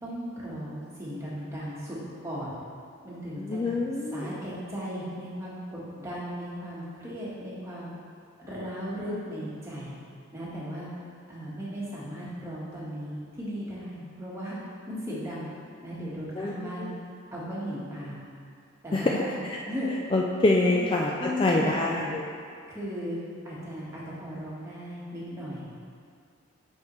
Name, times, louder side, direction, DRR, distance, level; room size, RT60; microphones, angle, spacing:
voice 1, 0.0-2.0 2.2-2.5 3.0-3.6 4.1-7.9 8.4-10.0 10.3-10.9 11.3-14.6 14.9-15.5 15.8-16.9 17.3-18.2 18.8-19.9 20.6-20.8 21.2-22.1 22.7-23.2 23.4-25.8, equal, 15° right, -8 dB, 1.4 m, -36 dB
voice 2, 3.4-4.3 16.4-16.9 18.9-19.2 19.5-19.6 20.1-22.2, left 2 dB, 25° left, -2 dB, 0.3 m, -26 dB
8.3 x 5.0 x 3.1 m, 2.3 s
head